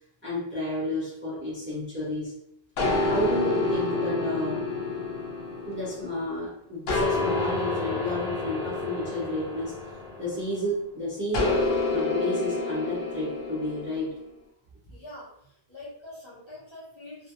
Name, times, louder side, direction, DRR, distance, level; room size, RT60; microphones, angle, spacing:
voice 1, 0.2-2.3 3.1-4.7 5.7-9.8 10.2-14.1, left 1 dB, 15° right, -7 dB, 0.5 m, -31 dB
sound 1, 2.8-6.3 6.9-10.6 11.3-14.0, left 3 dB, 70° left, 0.8 m, -28 dB
voice 2, 14.9-17.3, left 1 dB, 30° left, -9 dB, 0.8 m, -45 dB
2.3 x 2.1 x 2.8 m, 0.76 s
omnidirectional pair, 1.1 m